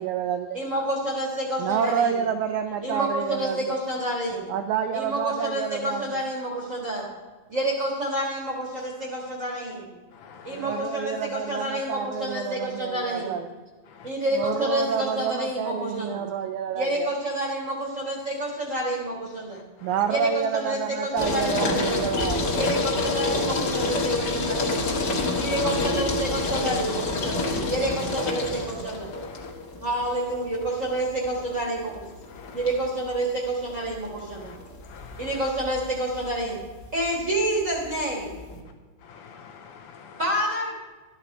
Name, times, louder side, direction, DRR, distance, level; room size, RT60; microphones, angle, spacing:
voice 1, 0.0-0.6 1.6-3.8 4.5-6.3 10.5-13.5 14.3-17.1 19.8-22.4, right 8 dB, 80° right, 6 dB, 1.7 m, -28 dB
voice 2, 0.5-2.2 2.8-4.5 4.9-7.0 7.5-9.9 10.4-13.4 14.0-16.2 16.7-19.6 20.1-22.1 22.5-24.8 25.4-29.1 29.8-32.0 32.5-34.5 35.2-36.6 36.9-38.4 40.2-40.8, right 1 dB, 40° right, -1 dB, 1.2 m, -29 dB
voice 3, 10.1-10.7 22.2-22.3 29.3-29.5 32.3-32.6 34.4-34.6 34.8-35.3 39.0-40.2, left 7 dB, 80° left, 5 dB, 1.9 m, -44 dB
sound 1, 21.2-38.6, left 2 dB, 55° left, 1.2 m, -28 dB
12.5 x 10.5 x 4.2 m, 1.3 s
omnidirectional pair, 4.1 m